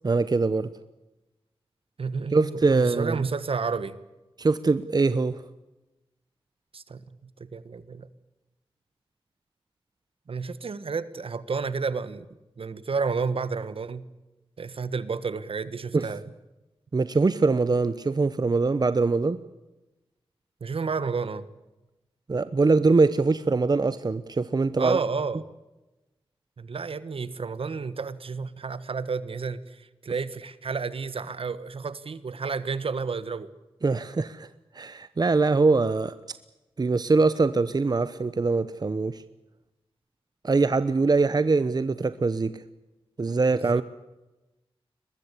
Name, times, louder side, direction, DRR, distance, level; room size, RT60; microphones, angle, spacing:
voice 1, 0.0-0.7 2.3-3.2 4.4-5.4 15.9-16.1 16.9-19.4 22.3-25.0 33.8-34.5 34.7-36.1 36.8-39.2 40.4-42.6 43.2-43.8, right 3 dB, 40° right, 14 dB, 0.9 m, -23 dB
voice 2, 2.0-3.9 6.7-7.0 7.4-8.1 10.3-12.3 12.6-14.0 14.6-16.2 20.6-21.5 24.8-25.4 26.6-33.5 43.5-43.8, right 5 dB, 65° right, 15 dB, 1.5 m, -31 dB
23.0 x 20.5 x 8.3 m, 1.0 s
wide cardioid pair, 75°, 10 cm